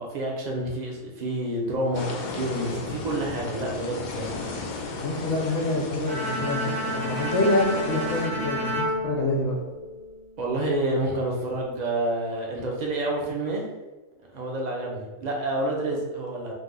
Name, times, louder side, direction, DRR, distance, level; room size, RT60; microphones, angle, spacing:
voice 1, 0.0-4.4 10.4-13.7 14.3-16.5, right 1 dB, 50° right, -1 dB, 0.5 m, -28 dB
sound 1, 1.9-8.3, left 3 dB, 90° left, 0.4 m, -35 dB
voice 2, 5.0-6.6 6.9-9.6, left 2 dB, 60° left, -2 dB, 1.1 m, -26 dB
Bowed string instrument, 6.1-10.2, equal, 75° right, 1.4 m, -30 dB
3.3 x 2.1 x 3.7 m, 1.2 s
omnidirectional pair, 1.4 m